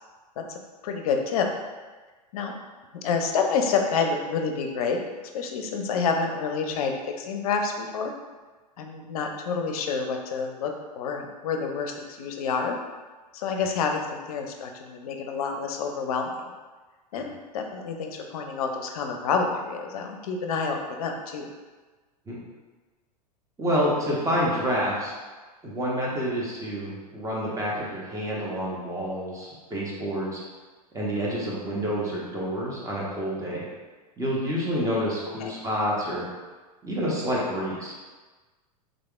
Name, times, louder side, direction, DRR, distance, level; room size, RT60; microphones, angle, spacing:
voice 1, 0.4-1.5 2.3-2.5 2.9-5.0 5.3-8.1 8.8-12.8 13.3-16.5 17.1-21.5 35.4-35.5, left 5 dB, 60° left, 4 dB, 0.6 m, -28 dB
voice 2, 23.6-25.1 25.6-30.4 30.9-33.7 34.2-36.2 36.8-37.9, equal, 15° right, -5 dB, 1.0 m, -28 dB
3.7 x 3.3 x 2.3 m, 1.3 s
hypercardioid pair, 95°, 21 cm